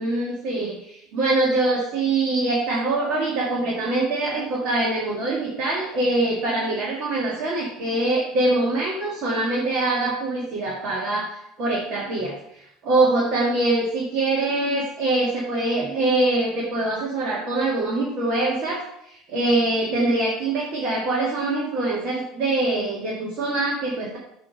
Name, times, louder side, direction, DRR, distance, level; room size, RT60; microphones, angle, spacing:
voice 1, 0.0-11.3 11.6-24.2, right 2 dB, 50° right, -4 dB, 1.8 m, -24 dB
7.5 x 3.4 x 5.2 m, 0.76 s
hypercardioid pair, 70°, 0 cm